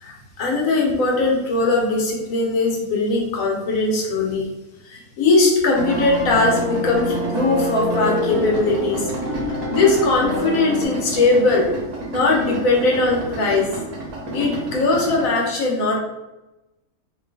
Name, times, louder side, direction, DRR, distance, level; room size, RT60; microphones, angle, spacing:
voice 1, 0.0-4.5 4.8-9.1 9.4-11.7 12.1-13.7 14.3-16.0, left 3 dB, 65° left, -1 dB, 1.2 m, -20 dB
sound 1, 5.7-10.8, left 1 dB, 45° left, 1.1 m, -26 dB
Idling, 5.7-15.3, right 2 dB, 90° right, 1.4 m, -31 dB
3.2 x 2.6 x 3.3 m, 0.99 s
omnidirectional pair, 1.6 m